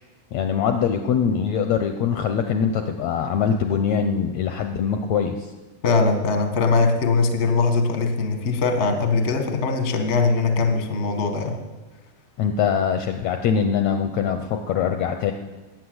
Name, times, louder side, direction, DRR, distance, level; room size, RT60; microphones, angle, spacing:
voice 1, 0.3-5.5 12.4-15.3, left 7 dB, 75° left, 6 dB, 1.6 m, -23 dB
voice 2, 5.8-11.6, left 4 dB, 45° left, 5 dB, 0.9 m, -21 dB
19.0 x 9.3 x 7.9 m, 1.2 s
omnidirectional pair, 3.9 m